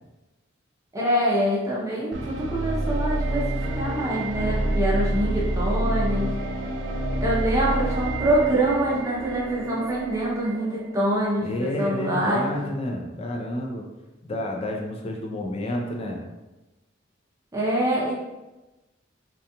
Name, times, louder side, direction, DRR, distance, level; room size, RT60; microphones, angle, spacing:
voice 1, 0.9-3.5 3.7-6.3 7.2-12.6 17.5-18.1, right 1 dB, 15° right, -5 dB, 0.6 m, -25 dB
sound 1, 2.1-11.2, right 1 dB, 70° right, 0.4 m, -28 dB
voice 2, 11.4-13.9 14.2-16.2, left 1 dB, 30° left, 0 dB, 0.4 m, -30 dB
2.4 x 2.3 x 2.8 m, 1.1 s
head